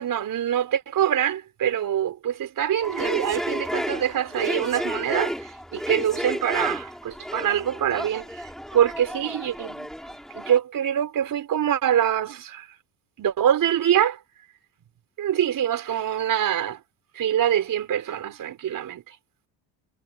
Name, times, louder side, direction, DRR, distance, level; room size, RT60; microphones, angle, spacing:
voice 1, 0.0-12.7 13.2-14.2 15.2-16.8 17.1-19.1, right 10 dB, 55° right, 5.1 m, -25 dB
sound 1, 2.8-10.6, equal, ahead, 7.2 m, -32 dB
cardioid pair, 100°, 39 cm